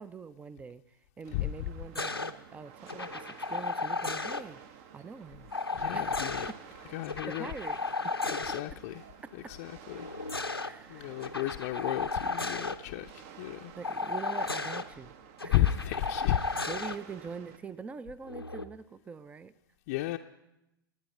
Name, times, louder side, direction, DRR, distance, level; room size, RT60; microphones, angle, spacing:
voice 1, 0.0-4.6 4.9-5.5 5.9-6.6 7.3-7.8 8.0-8.4 10.6-11.2 13.8-15.1 15.4-15.6 16.4-19.5, right 5 dB, 10° right, 18 dB, 0.5 m, -44 dB
sound 1, 1.2-17.6, right 8 dB, 40° right, 0.9 m, -52 dB
voice 2, 1.3-1.7 5.7-6.5 6.9-7.5 8.4-9.0 9.5-10.1 10.9-13.7 15.5-16.4 19.9-20.2, left 15 dB, 40° left, 3 dB, 0.6 m, -32 dB
sound 2, 1.9-2.3 2.9-4.4 5.5-6.5 7.0-8.6 9.9-10.7 11.2-12.8 13.8-14.8 15.4-17.0 18.2-18.6, left 3 dB, 90° left, 0.8 m, -34 dB
27.0 x 9.5 x 4.3 m, 0.90 s
figure-of-eight pair, 105°, 12 cm